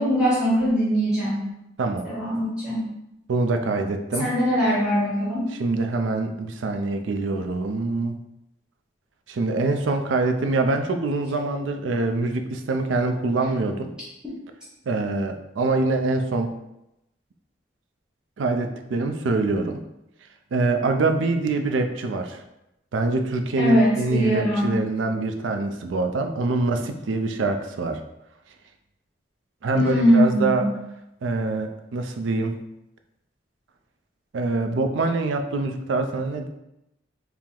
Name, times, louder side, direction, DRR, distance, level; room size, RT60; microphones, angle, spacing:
voice 1, 0.0-1.4 2.0-2.8 4.2-5.5 23.6-24.7 29.7-30.6, equal, 5° right, -8 dB, 0.9 m, -21 dB
voice 2, 3.3-4.3 5.5-8.1 9.3-13.9 14.9-16.5 18.4-19.8 20.5-22.4 22.9-28.0 29.6-30.7 31.2-32.5 34.3-36.5, right 3 dB, 90° right, 6 dB, 0.4 m, -24 dB
4.4 x 2.0 x 3.7 m, 0.87 s
head